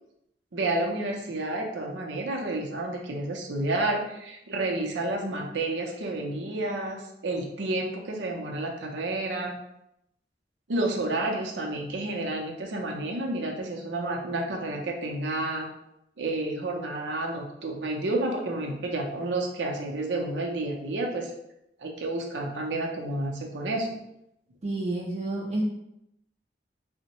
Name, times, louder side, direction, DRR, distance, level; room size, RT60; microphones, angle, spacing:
voice 1, 0.5-9.6 10.7-15.7 16.2-21.3 21.8-23.9, right 2 dB, 85° right, 0 dB, 0.6 m, -30 dB
voice 2, 24.6-25.6, right 2 dB, 40° right, -5 dB, 0.5 m, -30 dB
3.5 x 2.1 x 2.9 m, 0.81 s
head